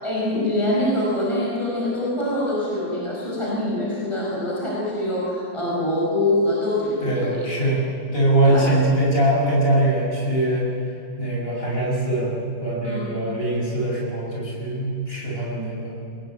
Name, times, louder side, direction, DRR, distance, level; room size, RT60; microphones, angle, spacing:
voice 1, 0.0-7.4 8.4-8.8 12.8-13.1, left 1 dB, 15° left, -5 dB, 6.0 m, -24 dB
voice 2, 7.0-10.7 11.2-15.9, right 1 dB, 30° left, -4 dB, 6.7 m, -22 dB
24.5 x 20.5 x 9.2 m, 2.5 s
omnidirectional pair, 2.0 m